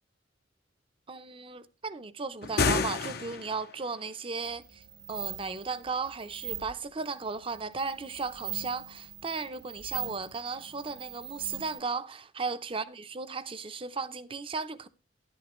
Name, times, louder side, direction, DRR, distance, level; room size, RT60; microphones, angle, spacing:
voice 1, 1.1-4.8 5.1-14.9, right 4 dB, 30° right, 0.7 m, -35 dB
sound 1, 2.4-3.7, left 4 dB, 60° left, 0.8 m, -29 dB
sound 2, 4.4-11.8, right 11 dB, 65° right, 1.5 m, -42 dB
12.0 x 11.5 x 3.1 m
head